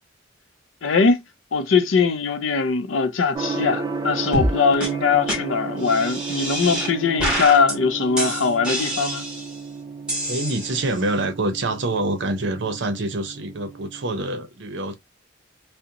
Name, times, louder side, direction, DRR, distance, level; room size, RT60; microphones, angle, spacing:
voice 1, 0.8-1.2 1.5-9.2, left 5 dB, 75° left, 0.5 m, -21 dB
Gong, 3.3-14.2, right 4 dB, 20° right, 0.4 m, -33 dB
sound 1, 4.3-4.5 4.8-4.9 5.3-5.4 5.8-6.9 7.2-7.7 8.2-9.6 10.1-11.0, equal, 5° right, 0.9 m, -27 dB
voice 2, 10.3-14.9, right 2 dB, 60° right, 0.6 m, -26 dB
2.5 x 2.0 x 2.7 m
head